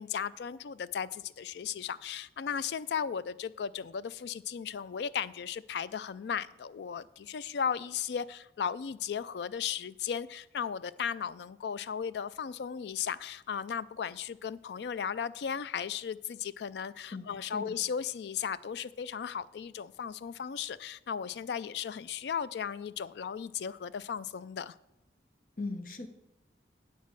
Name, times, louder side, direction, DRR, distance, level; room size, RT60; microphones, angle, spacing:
voice 1, 0.0-24.7, left 7 dB, 75° left, 17 dB, 0.4 m, -36 dB
voice 2, 17.1-17.8 25.6-26.1, left 3 dB, 50° left, 7 dB, 0.9 m, -39 dB
9.5 x 4.1 x 7.4 m, 0.88 s
head